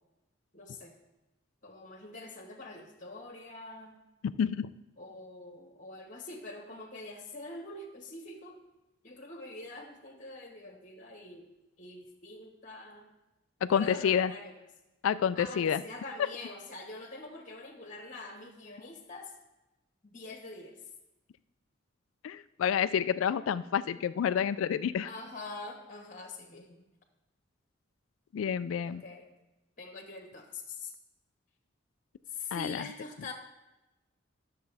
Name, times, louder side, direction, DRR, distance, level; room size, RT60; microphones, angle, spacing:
voice 1, 0.5-0.9 1.6-4.0 5.0-8.6 9.0-11.5 11.8-13.1 13.7-14.5 15.3-19.3 20.0-20.8 25.0-26.8 28.8-29.3 29.8-30.9 32.3-33.3, left 3 dB, 40° left, 2 dB, 1.4 m, -44 dB
voice 2, 4.4-4.7 13.6-14.3 15.0-15.8 22.2-25.1 28.3-29.0 32.5-32.8, left 8 dB, 85° left, 14 dB, 0.3 m, -29 dB
12.5 x 6.7 x 3.4 m, 1.0 s
head